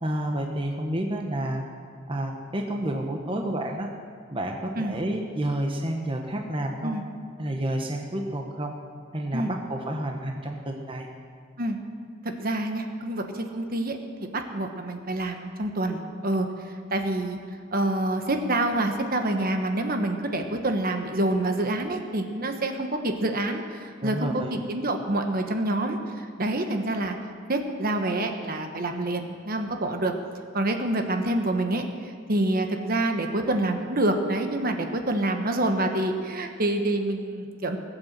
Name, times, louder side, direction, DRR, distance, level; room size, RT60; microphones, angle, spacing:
voice 1, 0.0-1.6 2.1-3.9 4.3-7.0 7.4-8.7 9.1-11.1 24.0-24.5, right 1 dB, 25° right, 2 dB, 1.1 m, -30 dB
voice 2, 12.2-14.0 14.3-17.4 17.7-27.2 27.5-30.1 30.5-37.8, right 1 dB, 50° right, 5 dB, 1.2 m, -27 dB
19.5 x 8.2 x 7.4 m, 2.1 s
head